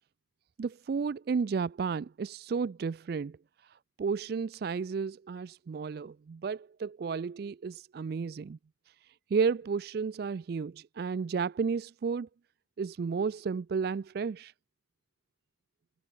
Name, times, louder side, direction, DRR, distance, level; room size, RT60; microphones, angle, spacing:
voice 1, 0.6-3.4 3.6-8.6 9.3-12.3 12.8-14.5, right 5 dB, 50° right, 0.3 m, -32 dB
head